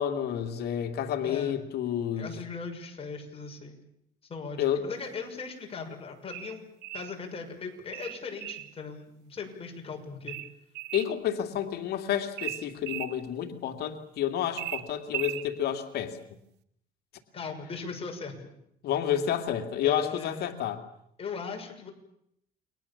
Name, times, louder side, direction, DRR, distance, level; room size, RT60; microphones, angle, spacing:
voice 1, 0.0-2.3 4.6-4.8 10.9-16.2 18.8-20.8, left 10 dB, 75° left, 6 dB, 2.5 m, -30 dB
voice 2, 1.2-1.6 2.2-3.8 4.3-6.7 6.9-10.4 17.3-18.5 19.8-20.5 21.2-21.9, left 5 dB, 35° left, 3 dB, 6.3 m, -39 dB
sound 1, 6.3-7.1 7.9-8.7 10.3-11.1 12.4-13.1 14.6-15.5, right 15 dB, 85° right, 1.3 m, -36 dB
29.5 x 23.0 x 7.2 m, 0.75 s
cardioid pair, 110°, 17 cm